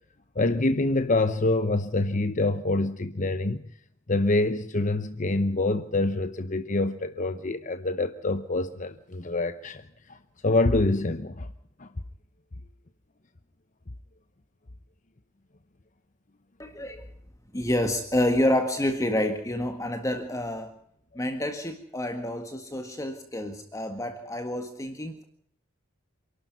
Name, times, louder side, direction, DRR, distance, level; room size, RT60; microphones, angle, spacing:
voice 1, 0.4-3.6 4.1-9.8 10.1-10.2 10.4-11.5 11.8-11.9, left 2 dB, 40° left, 0.8 m, -26 dB
voice 2, 16.6-17.1 17.5-20.8 21.2-25.2, left 1 dB, 15° left, 1.7 m, -28 dB
28.0 x 12.0 x 9.5 m
head